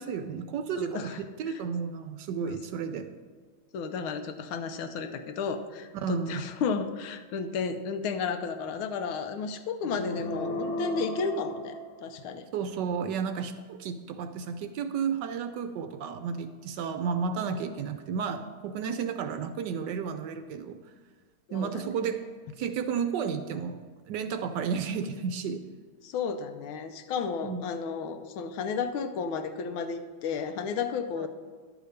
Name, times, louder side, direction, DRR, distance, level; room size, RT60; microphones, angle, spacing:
voice 1, 0.0-1.1 1.4-3.1 6.0-6.4 12.5-20.8 21.5-22.2 22.6-25.7 27.4-27.6 31.2-31.3, right 6 dB, 70° right, 9 dB, 1.1 m, -32 dB
voice 2, 0.7-1.2 1.5-1.6 2.4-2.6 3.7-12.5 17.4-17.5 21.5-21.8 26.0-31.3, left 5 dB, 80° left, 8 dB, 1.6 m, -33 dB
sound 1, 9.8-12.5, equal, 65° left, 0.9 m, -35 dB
11.0 x 5.0 x 6.6 m, 1.5 s
omnidirectional pair, 2.2 m